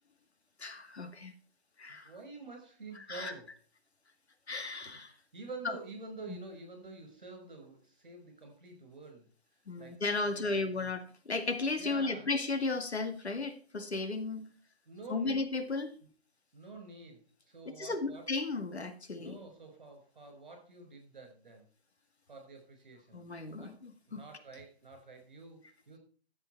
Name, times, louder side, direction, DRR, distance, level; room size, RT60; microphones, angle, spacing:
voice 1, 0.6-1.3 1.8-2.1 3.1-3.3 4.5-5.1 6.3-6.4 9.7-14.5 15.1-16.0 17.8-19.4 23.1-24.2, left 3 dB, 75° left, 7 dB, 2.1 m, -35 dB
voice 2, 1.9-3.5 5.3-9.3 9.8-10.9 11.7-12.3 14.9-15.4 16.0-16.1 16.5-18.3 19.2-21.7 22.3-23.3 23.6-23.7 24.1-26.0, right 3 dB, 45° right, 5 dB, 5.4 m, -48 dB
12.5 x 7.5 x 4.5 m, 0.39 s
hypercardioid pair, 180°, 33 cm